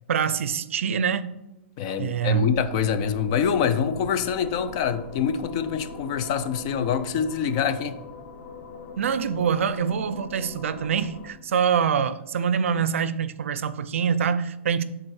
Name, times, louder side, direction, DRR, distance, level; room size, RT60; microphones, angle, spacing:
voice 1, 0.1-1.3 2.0-2.5 9.0-14.8, right 7 dB, 80° right, 0.5 m, -25 dB
voice 2, 1.8-8.0, left 7 dB, 30° left, 0.4 m, -25 dB
sound 1, 2.2-11.3, left 4 dB, 80° left, 1.4 m, -42 dB
9.0 x 3.8 x 4.7 m
hypercardioid pair, 175°, 7 cm